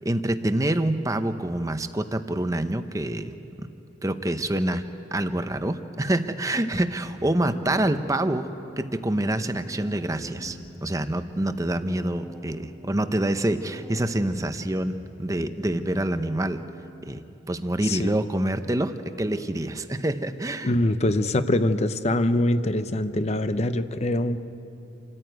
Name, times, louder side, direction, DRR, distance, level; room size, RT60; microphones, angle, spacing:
voice 1, 0.0-3.7 4.0-4.8 5.1-8.5 8.8-16.6 17.0-17.2 17.5-20.7, right 1 dB, 20° right, 9 dB, 0.8 m, -26 dB
sound 1, 7.1-17.1, equal, ahead, 1.7 m, -44 dB
voice 2, 17.8-18.2 20.6-24.4, left 1 dB, 35° left, 11 dB, 0.7 m, -24 dB
27.5 x 14.0 x 9.2 m, 2.9 s
head